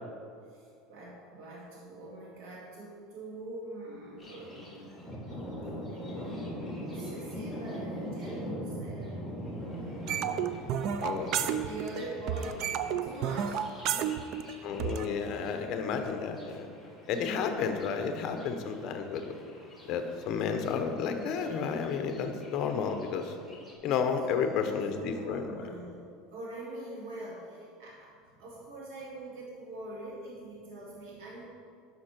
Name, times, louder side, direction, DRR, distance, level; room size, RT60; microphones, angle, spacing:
voice 1, 0.4-10.0 11.0-13.6 13.9-14.2 24.2-31.4, right 1 dB, 80° right, -4 dB, 1.9 m, -44 dB
Thunder, 4.2-23.7, equal, ahead, 1.5 m, -43 dB
sound 1, 10.1-12.0 12.3-15.1, right 9 dB, 50° right, 0.4 m, -31 dB
voice 2, 14.6-16.7 17.1-19.3 19.9-23.3 23.8-25.6, left 6 dB, 45° left, 6 dB, 0.9 m, -31 dB
11.5 x 5.8 x 4.5 m, 2.4 s
cardioid pair, 160°, 0 cm